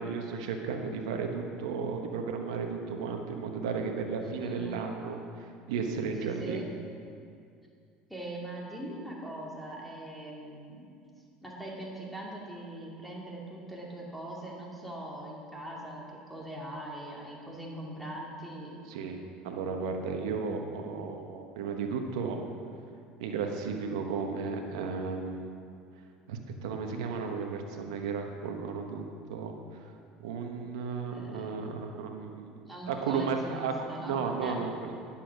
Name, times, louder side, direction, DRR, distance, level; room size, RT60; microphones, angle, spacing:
voice 1, 0.0-6.6 18.9-22.4 23.2-25.5 26.3-29.0 29.3-29.5 30.2-32.5 32.9-34.9, right 5 dB, 80° right, 4 dB, 1.1 m, -34 dB
voice 2, 4.2-4.8 6.2-6.7 8.1-10.9 11.4-18.7 31.1-31.7 32.7-34.6, right 1 dB, ahead, -3 dB, 2.5 m, -41 dB
10.0 x 7.2 x 6.0 m, 2.3 s
hypercardioid pair, 85°, 3 cm